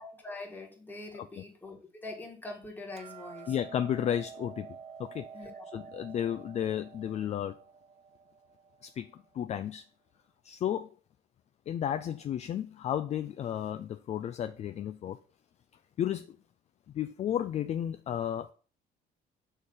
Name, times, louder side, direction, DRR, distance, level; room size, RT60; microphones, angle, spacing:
voice 1, 0.0-3.5 5.3-5.8, left 2 dB, 10° left, 1.7 m, -44 dB
Hammer, 3.0-9.2, right 6 dB, 40° right, 0.6 m, -49 dB
voice 2, 3.5-4.7 5.0-7.5 8.8-9.8 10.4-10.9 11.7-15.2 16.0-16.4 16.9-18.5, left 10 dB, 40° left, 0.4 m, -33 dB
6.3 x 3.3 x 5.5 m
cardioid pair, 110°, 17 cm